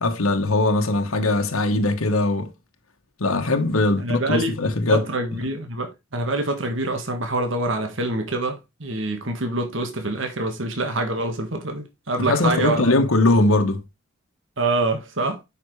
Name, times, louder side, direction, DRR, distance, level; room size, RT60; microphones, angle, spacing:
voice 1, 0.0-2.5 3.2-5.0 12.3-13.8, left 2 dB, 90° left, 1.3 m, -20 dB
voice 2, 4.0-4.5 4.9-12.9 14.6-15.4, right 2 dB, 65° right, 1.6 m, -25 dB
8.4 x 5.9 x 3.2 m
head